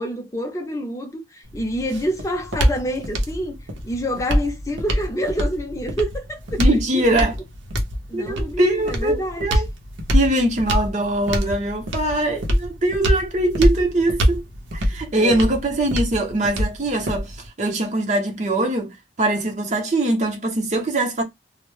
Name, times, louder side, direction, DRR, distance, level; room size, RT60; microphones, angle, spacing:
voice 1, 0.0-3.6 3.8-7.1 8.1-9.6 14.2-14.3 15.2-15.5, equal, 15° left, 0.5 m, -27 dB
sound 1, 1.4-17.5, equal, 90° right, 0.7 m, -24 dB
voice 2, 6.6-7.3 8.1-9.7 10.1-14.4 14.7-21.2, right 1 dB, 40° right, 0.7 m, -22 dB
2.1 x 2.0 x 3.0 m
head